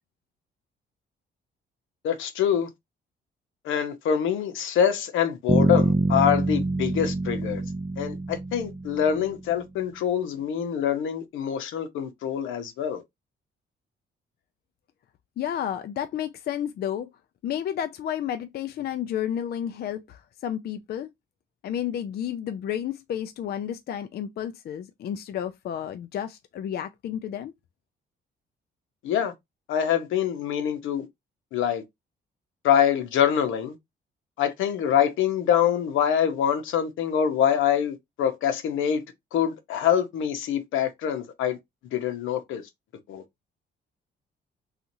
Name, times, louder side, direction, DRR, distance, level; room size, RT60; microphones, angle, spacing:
voice 1, 2.0-2.7 3.6-7.6 8.0-13.0 29.0-29.3 29.7-31.1 31.5-31.8 32.6-33.7 34.4-39.0 39.3-41.6 41.9-42.6 43.1-43.2, left 9 dB, 85° left, 0.7 m, -25 dB
Bass guitar, 5.5-9.4, right 2 dB, 20° right, 0.4 m, -25 dB
voice 2, 15.4-17.1 17.4-21.1 21.6-27.5, left 10 dB, 55° left, 0.4 m, -31 dB
2.9 x 2.4 x 2.6 m
cardioid pair, 90°, 20 cm